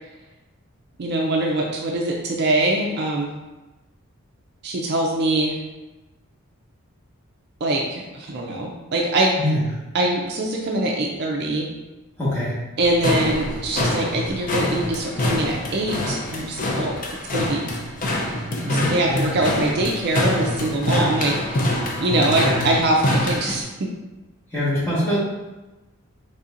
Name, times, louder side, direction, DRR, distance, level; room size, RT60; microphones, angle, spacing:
voice 1, 1.0-3.3 4.6-5.5 7.6-9.3 9.9-11.7 12.8-17.0 17.3-17.7 18.7-23.9, right 2 dB, 45° right, -1 dB, 0.4 m, -23 dB
voice 2, 12.2-12.6 18.6-19.3 22.0-22.6 24.5-25.2, equal, 10° left, -10 dB, 1.4 m, -24 dB
sound 1, 12.8-23.6, left 1 dB, 35° left, 0.5 m, -25 dB
4.1 x 3.3 x 2.5 m, 1.1 s
head